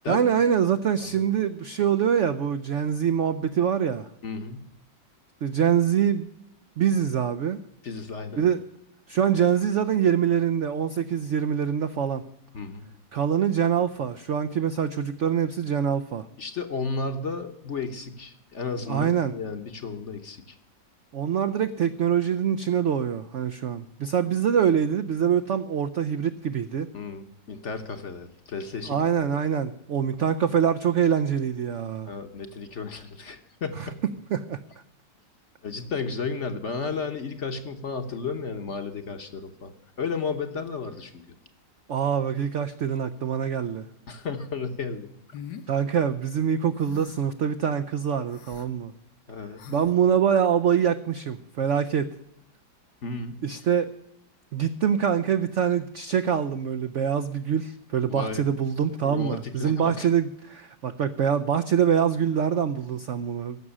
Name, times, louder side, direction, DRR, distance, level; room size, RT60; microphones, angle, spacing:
voice 1, 0.1-4.1 5.4-6.3 6.8-7.6 8.4-8.6 9.1-12.3 13.1-16.3 18.9-19.3 21.1-26.9 28.9-32.1 33.8-33.9 34.3-34.6 41.9-43.8 45.7-48.9 49.7-52.1 53.4-53.9 54.5-63.6, right 8 dB, 70° right, 10 dB, 0.7 m, -24 dB
voice 2, 4.2-4.6 7.8-8.4 12.5-12.8 16.4-20.5 26.9-29.4 32.1-34.0 35.6-39.7 40.0-41.2 44.1-45.4 49.3-49.6 53.0-53.4 58.1-58.5 59.0-60.1, left 4 dB, 45° left, 7 dB, 1.1 m, -33 dB
sound 1, 45.3-45.7 46.8-47.3 48.3-48.7 49.6-49.9, left 8 dB, 65° left, 1.5 m, -41 dB
15.0 x 6.1 x 9.8 m, 0.78 s
omnidirectional pair, 1.9 m